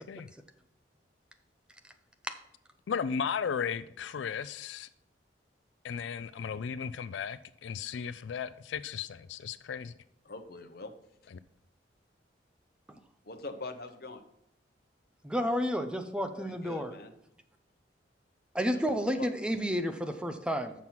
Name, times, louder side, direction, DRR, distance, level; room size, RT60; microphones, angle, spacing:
voice 1, 2.9-4.9 5.8-9.9 11.3-11.4, left 6 dB, 80° left, 0.4 m, -35 dB
voice 2, 10.2-10.9 13.2-14.2 16.3-17.1 18.7-18.8 19.2-19.3, left 3 dB, 55° left, 1.0 m, -43 dB
voice 3, 15.2-16.9 18.5-20.7, equal, 5° right, 0.6 m, -31 dB
7.3 x 6.1 x 5.7 m
head